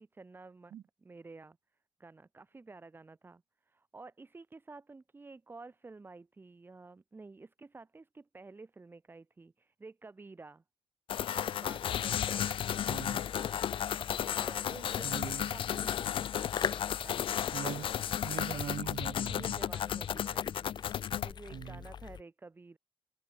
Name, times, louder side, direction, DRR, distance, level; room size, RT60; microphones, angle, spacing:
voice 1, 0.0-0.7 1.0-1.6 2.0-10.6 11.5-13.0 13.3-13.7 13.9-17.5 19.3-22.8, right 3 dB, 25° right, 3.2 m, -51 dB
sound 1, 11.1-21.3, left 10 dB, 75° left, 0.8 m, -34 dB
sound 2, 11.6-22.2, left 7 dB, 55° left, 1.2 m, -44 dB
voice 2, 12.9-13.2 15.0-15.5 17.5-17.9 18.2-19.6 21.5-21.8, right 10 dB, 90° right, 4.5 m, -41 dB
wide cardioid pair, 135°, 9 cm